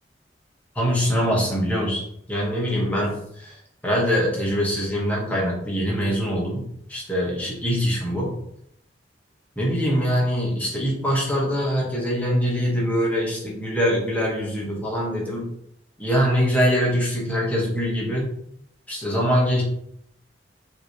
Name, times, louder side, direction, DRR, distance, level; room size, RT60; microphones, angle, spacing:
voice 1, 0.7-2.0 2.3-3.6 3.8-8.4 9.6-15.5 16.0-18.3 18.9-19.6, equal, 10° left, -4 dB, 1.3 m, -23 dB
5.8 x 2.8 x 3.2 m, 0.71 s
head